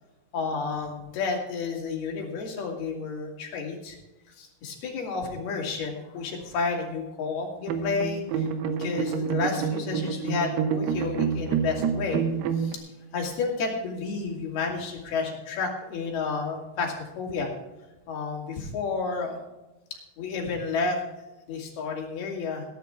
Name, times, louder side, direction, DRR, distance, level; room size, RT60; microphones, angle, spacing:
voice 1, 0.3-4.0 4.4-8.5 8.8-12.2 12.6-12.8 13.1-17.5 18.1-19.4 20.2-21.0 21.5-22.7, left 4 dB, 70° left, -1 dB, 4.6 m, -31 dB
sound 1, 7.7-12.8, right 6 dB, 80° right, 3.1 m, -28 dB
20.0 x 10.5 x 3.6 m, 1.0 s
omnidirectional pair, 4.7 m